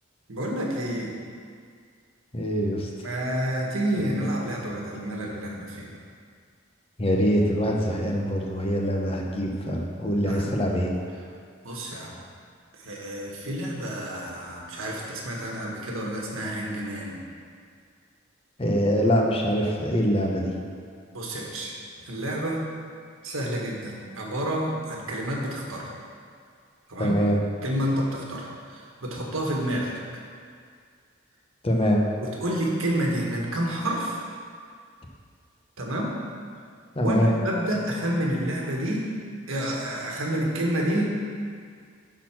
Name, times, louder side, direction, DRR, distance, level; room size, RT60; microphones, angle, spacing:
voice 1, 0.3-1.1 3.0-5.9 10.3-10.5 11.6-12.2 12.8-17.2 21.1-21.8 22.0-22.6 23.2-25.9 26.9-27.2 27.6-30.0 32.2-34.2 35.8-36.1 37.0-39.1 39.5-41.1, right 1 dB, 85° right, -2 dB, 1.6 m, -29 dB
voice 2, 2.3-2.9 7.0-10.9 18.6-20.5 27.0-27.4 31.6-32.0 37.0-37.3, equal, 30° left, -1 dB, 1.0 m, -24 dB
10.5 x 4.1 x 6.0 m, 2.1 s
head